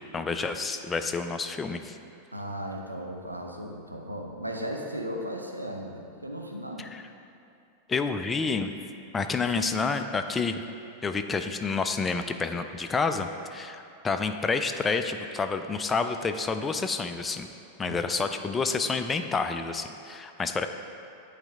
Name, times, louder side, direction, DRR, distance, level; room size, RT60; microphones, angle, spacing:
voice 1, 0.0-2.0 6.8-7.0 7.9-8.7 9.1-10.6 11.0-17.5 17.8-20.7, left 4 dB, 15° left, 7 dB, 0.3 m, -29 dB
voice 2, 2.3-6.9 17.8-18.0, equal, 85° right, 2 dB, 0.6 m, -36 dB
8.8 x 4.1 x 3.5 m, 2.7 s
figure-of-eight pair, 90°, 0 cm